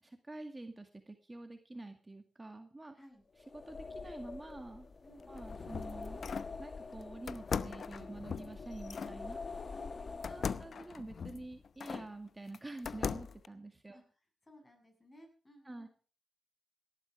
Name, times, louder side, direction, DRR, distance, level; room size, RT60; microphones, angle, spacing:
voice 1, 0.0-3.0 3.5-4.9 5.3-6.2 6.6-9.4 10.3-14.0 15.6-15.9, right 2 dB, 20° right, 6 dB, 2.1 m, -47 dB
sound 1, 3.4-11.0, left 4 dB, 45° left, 1.5 m, -46 dB
voice 2, 5.0-5.3 9.7-10.6 13.9-14.0 14.4-15.9, equal, 25° left, 5 dB, 7.3 m, -59 dB
sound 2, 5.2-6.6 7.3-9.2 10.2-12.1 12.5-13.5, left 6 dB, 60° left, 0.8 m, -40 dB
18.0 x 12.0 x 5.1 m, 0.38 s
cardioid pair, 60°, 0 cm